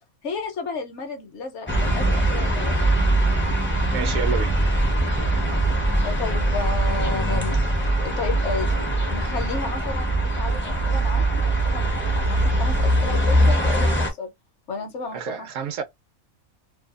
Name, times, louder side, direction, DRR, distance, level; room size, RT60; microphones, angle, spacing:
voice 1, 0.2-2.8 6.0-7.6 8.0-14.3 14.7-15.5, left 4 dB, 60° left, 1.0 m, -32 dB
sound 1, 1.7-14.1, right 1 dB, 15° left, 0.4 m, -22 dB
voice 2, 3.9-4.6 15.1-15.8, right 7 dB, 75° right, 1.0 m, -29 dB
2.6 x 2.3 x 2.3 m
omnidirectional pair, 1.4 m